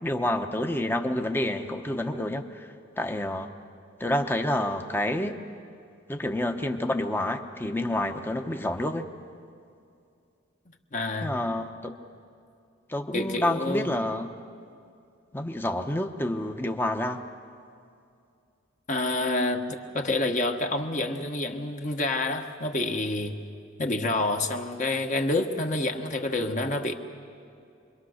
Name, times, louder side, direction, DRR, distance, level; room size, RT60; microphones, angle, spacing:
voice 1, 0.0-3.5 4.0-5.4 6.1-9.1 11.2-11.9 12.9-14.3 15.3-17.2, left 1 dB, 10° left, 5 dB, 0.9 m, -28 dB
voice 2, 10.9-11.3 13.1-13.9 18.9-23.4 23.8-26.9, left 2 dB, 40° left, 4 dB, 1.3 m, -28 dB
27.5 x 23.0 x 6.5 m, 2.4 s
head